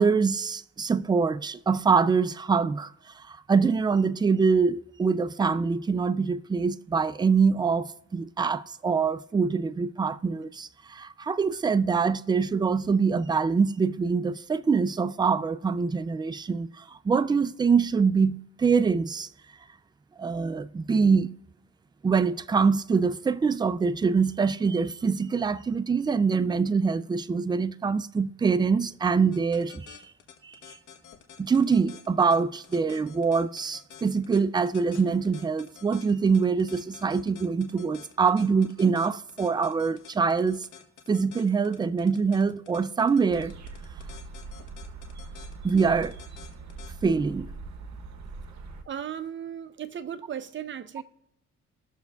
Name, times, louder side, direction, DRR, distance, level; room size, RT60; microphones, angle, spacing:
voice 1, 0.0-19.3 20.2-21.4 22.0-30.0 30.4-30.6 31.4-40.7 41.1-43.5 45.6-46.1 47.0-47.5, right 5 dB, 15° right, 0.4 m, -24 dB
sound 1, 29.3-46.9, left 8 dB, 80° left, 1.2 m, -49 dB
sound 2, 43.3-48.8, right 3 dB, 65° right, 1.0 m, -42 dB
voice 2, 48.9-51.0, right 9 dB, 40° right, 0.7 m, -36 dB
20.0 x 6.7 x 2.3 m
cardioid pair, 90°, 30 cm